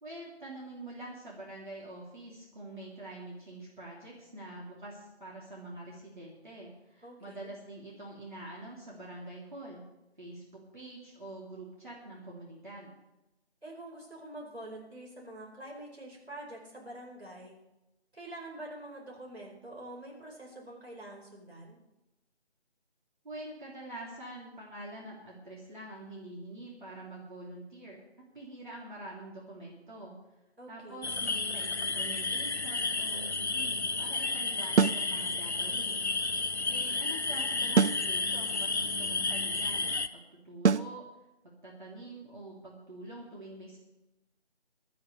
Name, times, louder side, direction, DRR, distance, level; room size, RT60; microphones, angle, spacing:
voice 1, 0.0-9.8 10.2-12.9 23.2-28.0 28.3-30.2 30.7-36.0 36.7-41.1 41.4-43.8, right 1 dB, 45° right, -5 dB, 3.4 m, -45 dB
voice 2, 7.0-7.5 13.6-17.5 18.1-21.8 30.6-31.1, right 1 dB, 70° right, -2 dB, 4.9 m, -46 dB
sound 1, 31.0-40.1, left 3 dB, 75° left, 0.9 m, -32 dB
sound 2, 34.8-35.1 37.8-38.1 40.6-40.9, right 6 dB, 85° right, 0.5 m, -23 dB
21.0 x 12.5 x 3.4 m, 0.96 s
figure-of-eight pair, 165°, 33 cm